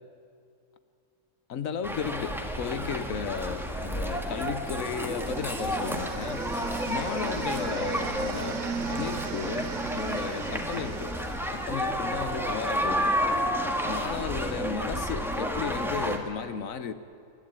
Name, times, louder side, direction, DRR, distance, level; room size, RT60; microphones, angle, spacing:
voice 1, 1.5-6.4 6.9-8.6 8.9-11.2 11.5-13.1 13.9-16.9, left 7 dB, 60° left, 12 dB, 1.1 m, -34 dB
sound 1, 1.8-16.2, equal, ahead, 1.6 m, -31 dB
sound 2, 4.5-12.5, right 6 dB, 60° right, 1.1 m, -38 dB
27.5 x 12.5 x 8.9 m, 2.5 s
omnidirectional pair, 1.8 m